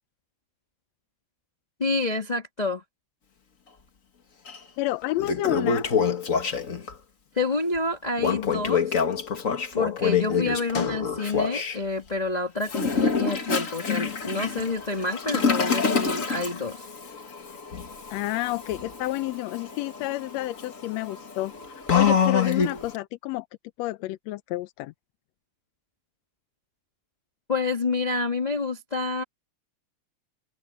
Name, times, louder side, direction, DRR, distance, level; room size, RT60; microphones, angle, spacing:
voice 1, 1.8-2.8 7.3-9.0 9.7-16.8 27.5-29.2, left 3 dB, 15° left, 1.6 m, -28 dB
Toilet flush, 4.5-4.6 5.0-6.9 8.2-11.8 12.6-22.9, left 6 dB, 35° left, 1.5 m, -26 dB
voice 2, 4.8-5.9 10.0-10.4 18.1-23.5 23.8-24.9, left 17 dB, 75° left, 1.7 m, -30 dB
omnidirectional pair, 3.3 m